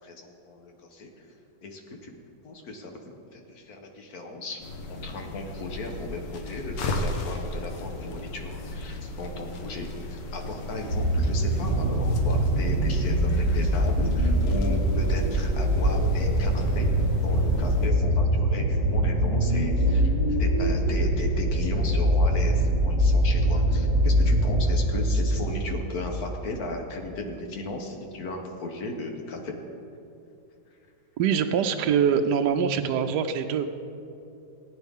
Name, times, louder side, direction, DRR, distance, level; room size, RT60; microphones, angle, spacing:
voice 1, 0.0-1.2 1.6-2.1 2.4-16.9 17.2-20.1 20.4-29.5, left 2 dB, 60° left, 3 dB, 1.6 m, -36 dB
sound 1, 4.6-17.9, left 1 dB, 90° left, 1.7 m, -35 dB
sound 2, 10.9-26.3 27.1-27.2, equal, 55° right, 1.9 m, -23 dB
voice 2, 31.2-33.7, right 7 dB, 75° right, 7 dB, 1.1 m, -24 dB
18.0 x 8.9 x 3.6 m, 2.7 s
omnidirectional pair, 1.9 m